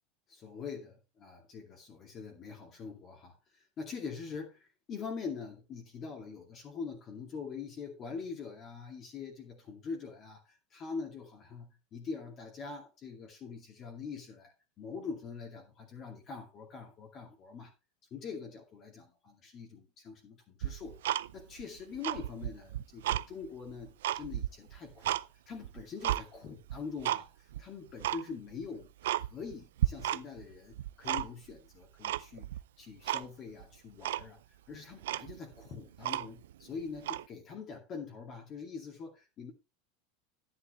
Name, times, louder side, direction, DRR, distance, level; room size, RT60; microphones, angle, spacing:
voice 1, 0.3-17.7 18.1-21.0 21.3-25.2 25.5-32.5 32.8-34.4 34.7-39.5, left 5 dB, 35° left, 0 dB, 2.4 m, -44 dB
Tick-tock, 20.6-21.6 21.9-23.3 23.7-25.2 25.6-26.2 26.7-27.2 27.5-27.6 28.0-28.2 28.6-28.7 29.0-29.5 29.8-30.5 30.7-31.5 32.0-32.6 33.1-33.3 33.6-33.7 34.0-34.3 34.7-34.8 35.0-36.5 37.0-37.2, right 13 dB, 90° right, 0.4 m, -33 dB
11.0 x 9.9 x 3.1 m, 0.26 s
supercardioid pair, 140°, 0 cm